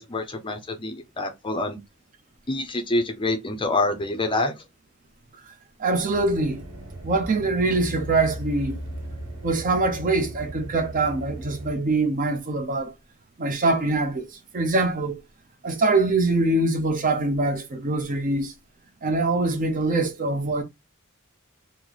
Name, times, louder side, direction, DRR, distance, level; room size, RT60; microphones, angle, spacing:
voice 1, 0.0-1.8 2.5-4.5, left 2 dB, 25° left, 0.5 m, -26 dB
voice 2, 5.8-6.6 7.0-8.8 9.4-12.9 13.4-14.3 14.5-15.2 15.6-18.5 19.0-20.6, right 2 dB, 40° right, 0.6 m, -23 dB
sound 1, 6.1-11.7, right 1 dB, 85° right, 1.0 m, -37 dB
3.1 x 2.0 x 3.8 m
head